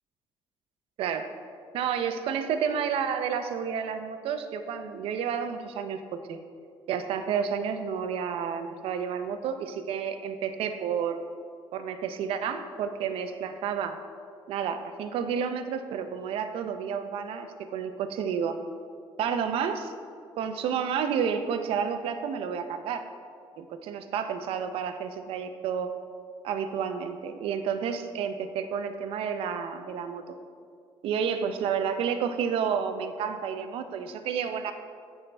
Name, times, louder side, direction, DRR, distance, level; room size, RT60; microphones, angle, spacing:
voice 1, 1.0-1.3 1.7-6.4 6.9-11.2 11.7-14.0 14.5-18.6 19.2-19.9 20.4-23.1 23.6-25.9 26.4-30.4 31.0-34.7, right 7 dB, 75° right, 8 dB, 0.6 m, -30 dB
12.5 x 4.5 x 3.4 m, 2.3 s
cardioid pair, 160°, 10 cm